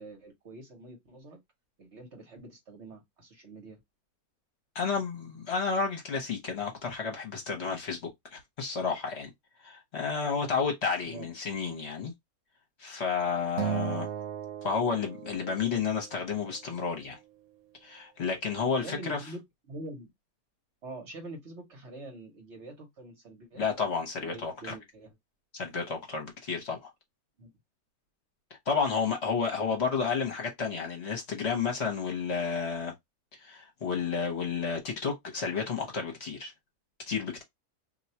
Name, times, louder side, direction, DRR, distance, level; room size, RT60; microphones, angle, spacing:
voice 1, 0.0-1.4 1.8-3.8 11.1-11.3 18.8-19.4 19.7-20.1 20.8-23.6 24.2-25.2 27.4-27.5, right 2 dB, 55° right, 1.2 m, -45 dB
voice 2, 4.7-9.3 9.6-12.1 12.8-14.1 14.6-17.2 17.8-19.2 23.6-24.7 25.5-26.9 28.7-32.9 33.3-36.5 37.1-37.4, left 5 dB, 50° left, 1.1 m, -31 dB
Acoustic guitar, 13.6-16.0, right 9 dB, 80° right, 1.1 m, -35 dB
2.7 x 2.3 x 4.1 m
omnidirectional pair, 1.5 m